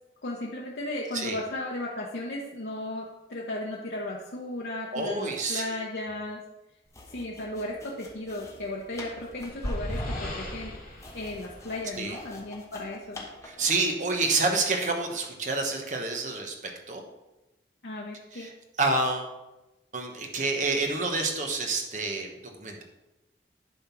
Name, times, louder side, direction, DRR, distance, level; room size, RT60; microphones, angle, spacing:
voice 1, 0.2-6.4 7.1-13.2 17.8-18.5, left 1 dB, 70° left, -3 dB, 0.9 m, -35 dB
voice 2, 4.9-5.6 12.0-12.2 13.4-16.5 16.9-17.0 18.3-18.5 18.8-19.3 19.9-22.8, right 3 dB, 45° right, 3 dB, 1.2 m, -28 dB
sound 1, 6.9-13.9, left 2 dB, 15° left, 1.0 m, -46 dB
sound 2, 8.9-12.5, equal, 50° left, 3.2 m, -36 dB
10.5 x 3.9 x 6.0 m, 1.0 s
head